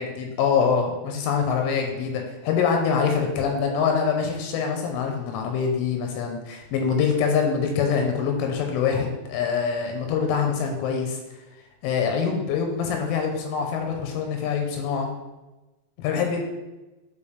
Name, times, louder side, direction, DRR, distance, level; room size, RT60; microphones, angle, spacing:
voice 1, 0.0-11.2 11.8-15.1 16.0-16.4, left 6 dB, 85° left, 3 dB, 3.2 m, -24 dB
7.1 x 4.9 x 3.3 m, 1.1 s
omnidirectional pair, 5.7 m